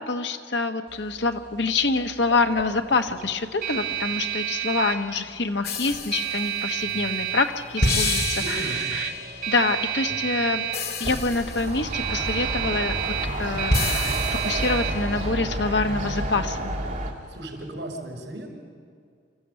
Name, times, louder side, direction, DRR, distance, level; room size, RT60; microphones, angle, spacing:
voice 1, 0.0-9.1 9.5-10.6 11.0-13.1 13.4-14.1 14.4-16.7, left 3 dB, 75° left, 6 dB, 1.3 m, -26 dB
sound 1, 0.9-17.7, right 11 dB, 65° right, 2.7 m, -32 dB
sound 2, 5.6-6.7 7.8-9.5 10.7-12.1 13.7-15.0, left 3 dB, 60° left, 2.4 m, -28 dB
voice 2, 8.4-9.0 17.3-18.5, right 1 dB, 85° right, 2 dB, 5.4 m, -35 dB
sound 3, 11.0-17.1, right 1 dB, 50° right, 2.5 m, -30 dB
27.5 x 14.0 x 8.3 m, 2.2 s
head